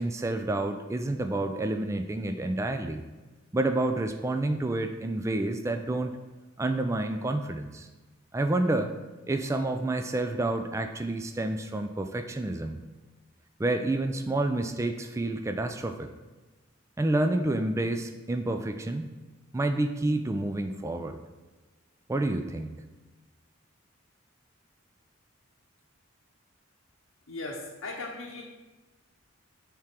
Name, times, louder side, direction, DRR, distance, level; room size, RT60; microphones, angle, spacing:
voice 1, 0.0-3.0 3.5-6.2 6.6-7.9 8.3-8.9 9.3-12.8 13.6-16.1 17.0-19.2 19.5-21.2 22.1-22.8, right 2 dB, 15° right, 6 dB, 0.3 m, -29 dB
voice 2, 27.3-28.4, left 2 dB, 75° left, -3 dB, 0.8 m, -37 dB
7.3 x 3.7 x 5.9 m, 1.2 s
head